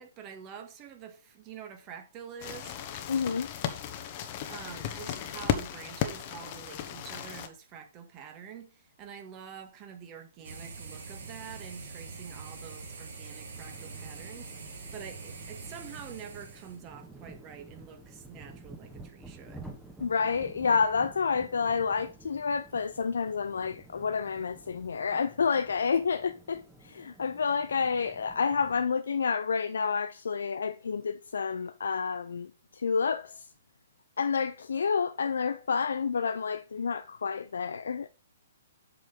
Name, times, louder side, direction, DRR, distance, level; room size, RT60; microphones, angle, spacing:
voice 1, 0.0-2.8 4.2-19.7, right 7 dB, 30° right, 1.9 m, -47 dB
sound 1, 2.4-7.5, left 10 dB, 40° left, 1.1 m, -35 dB
voice 2, 3.1-3.5 20.0-33.5 34.2-38.1, left 5 dB, 70° left, 0.5 m, -29 dB
sound 2, 10.4-16.8, right 4 dB, 65° right, 3.0 m, -44 dB
sound 3, 13.5-28.8, right 2 dB, 5° right, 1.5 m, -51 dB
7.7 x 5.9 x 5.3 m
figure-of-eight pair, 120°, 0 cm